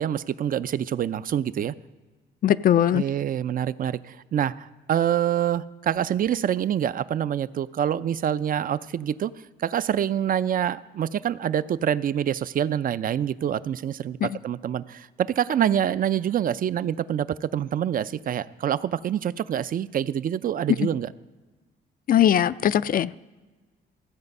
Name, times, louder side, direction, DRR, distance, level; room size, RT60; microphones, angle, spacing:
voice 1, 0.0-1.7 2.9-9.3 9.6-21.1, right 10 dB, 45° right, 16 dB, 0.4 m, -26 dB
voice 2, 2.4-3.0 14.2-14.3 20.8-20.9 22.1-23.2, left 10 dB, 45° left, 17 dB, 0.4 m, -20 dB
15.5 x 7.9 x 5.4 m, 1.3 s
cardioid pair, 90°, 20 cm